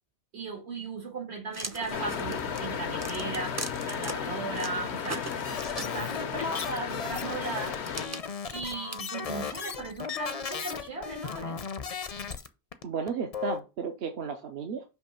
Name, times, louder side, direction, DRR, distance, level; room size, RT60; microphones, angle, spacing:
voice 1, 0.3-5.3 5.8-7.8 8.5-11.6, right 3 dB, 85° right, 2.2 m, -37 dB
sound 1, 1.5-4.1 4.5-6.3 7.1-9.8, right 2 dB, 25° right, 0.4 m, -40 dB
sound 2, 1.9-8.1, left 7 dB, 85° left, 1.0 m, -34 dB
sound 3, 5.4-12.5 12.7-12.8 13.1-13.6, left 6 dB, 45° left, 0.6 m, -36 dB
voice 2, 12.8-14.8, right 5 dB, 70° right, 1.0 m, -33 dB
5.8 x 3.0 x 5.5 m
omnidirectional pair, 1.1 m